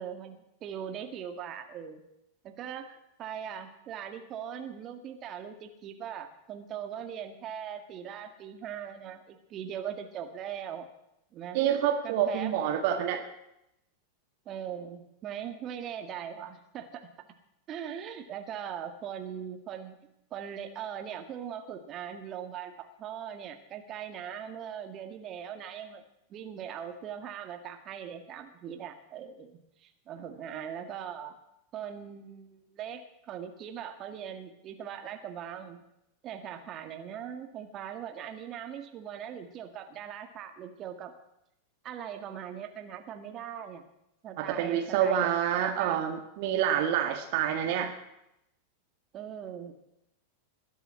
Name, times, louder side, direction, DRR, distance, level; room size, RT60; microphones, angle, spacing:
voice 1, 0.0-2.0 2.4-10.9 11.3-11.6 12.0-12.5 14.5-17.1 17.7-20.0 20.3-26.0 26.3-31.4 31.7-35.8 36.2-41.1 41.8-43.8 44.2-46.0 49.1-49.7, right 9 dB, 30° right, 6 dB, 2.0 m, -40 dB
voice 2, 11.5-13.2 44.4-47.9, right 9 dB, 50° right, 4 dB, 1.7 m, -27 dB
20.5 x 7.1 x 9.9 m, 0.84 s
figure-of-eight pair, 90°, 0 cm